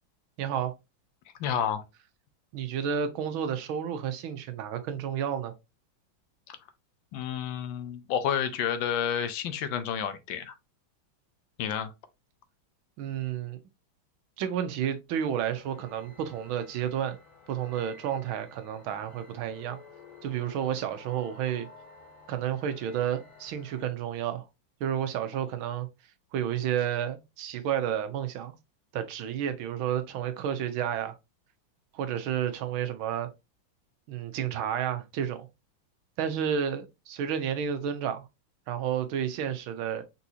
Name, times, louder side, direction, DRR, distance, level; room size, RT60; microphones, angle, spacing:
voice 1, 0.4-0.7 2.5-5.5 13.0-13.6 14.4-17.2 17.5-19.8 20.2-21.7 22.3-24.5 24.8-25.9 26.3-28.5 28.9-31.2 31.9-33.3 34.1-35.5 36.2-38.2 38.7-40.0, right 9 dB, 85° right, 1.6 m, -31 dB
voice 2, 1.4-1.8 6.5-6.6 7.1-10.5 11.6-11.9, left 8 dB, 80° left, 1.4 m, -30 dB
sound 1, 15.5-23.8, left 3 dB, 45° left, 1.4 m, -53 dB
4.6 x 4.2 x 2.7 m
omnidirectional pair, 2.2 m